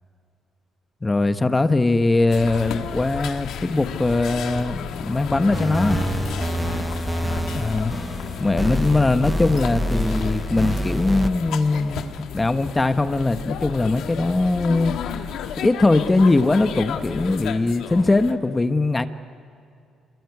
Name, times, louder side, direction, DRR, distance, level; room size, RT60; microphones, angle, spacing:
voice 1, 1.0-6.0 7.5-8.0 8.4-14.9 15.6-19.1, left 2 dB, 20° left, 9 dB, 1.2 m, -21 dB
sound 1, 2.3-18.3, left 8 dB, 80° left, 1.5 m, -33 dB
sound 2, 5.5-11.3, right 1 dB, 10° right, 0.6 m, -27 dB
27.0 x 22.0 x 9.6 m, 2.4 s
cardioid pair, 90°, 0 cm